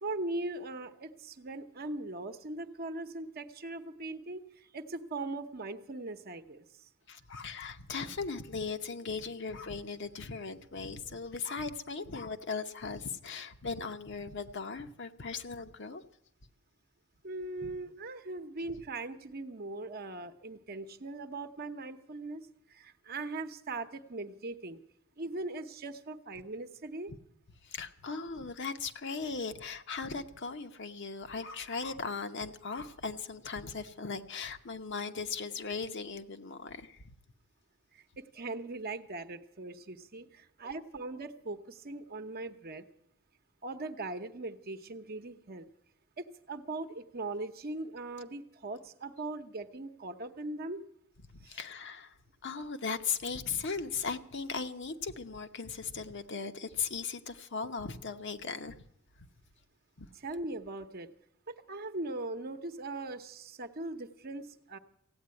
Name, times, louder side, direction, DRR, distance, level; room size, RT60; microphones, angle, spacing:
voice 1, 0.0-6.6 17.2-24.8 25.2-27.1 37.9-42.9 43.6-45.7 46.2-50.8 51.4-51.6 60.1-61.1 61.5-64.8, right 2 dB, 45° right, 7 dB, 0.9 m, -40 dB
voice 2, 7.1-16.0 17.6-17.7 27.6-37.1 51.5-52.2 52.4-58.8 60.0-60.1, left 5 dB, 60° left, 7 dB, 0.9 m, -38 dB
16.0 x 8.7 x 9.5 m, 0.73 s
head